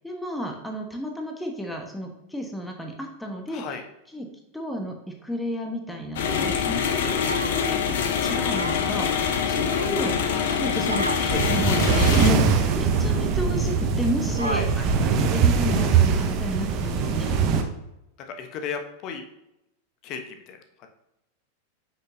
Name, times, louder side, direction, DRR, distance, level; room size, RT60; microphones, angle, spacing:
voice 1, 0.0-3.6 4.1-4.2 4.5-7.8 8.2-14.7 15.0-17.3, equal, 5° left, 2 dB, 1.3 m, -32 dB
voice 2, 3.5-3.8 14.4-14.7 18.3-19.2 20.0-20.9, left 6 dB, 40° left, 6 dB, 1.1 m, -35 dB
sound 1, 6.2-12.3, left 7 dB, 55° left, 0.9 m, -25 dB
Human voice, 7.2-7.8 8.6-9.0 9.6-10.2 10.9-11.2 11.9-12.3 13.0-13.1 14.4-15.0, right 3 dB, 80° right, 0.4 m, -33 dB
sound 2, 11.3-17.6, right 5 dB, 40° right, 0.9 m, -22 dB
8.6 x 6.1 x 2.8 m, 0.86 s
figure-of-eight pair, 90°, 0 cm